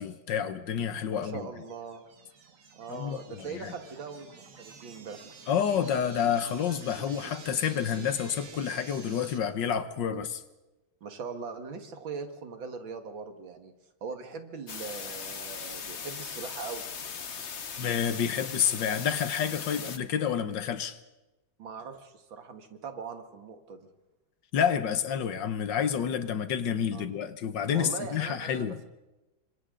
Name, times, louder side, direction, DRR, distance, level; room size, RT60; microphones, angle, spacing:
voice 1, 0.0-1.5 2.9-3.7 5.5-10.4 17.8-21.0 24.5-28.8, left 8 dB, 70° left, 12 dB, 1.6 m, -29 dB
voice 2, 1.1-2.0 2.8-5.2 10.0-10.3 11.0-13.7 14.0-16.8 21.6-23.8 26.9-27.1 27.7-28.9, right 5 dB, 75° right, 6 dB, 2.6 m, -41 dB
sound 1, 1.4-9.4, right 5 dB, 45° right, 1.6 m, -49 dB
sound 2, 14.7-20.0, left 6 dB, 40° left, 1.2 m, -39 dB
28.0 x 25.0 x 3.9 m, 1.0 s
omnidirectional pair, 2.1 m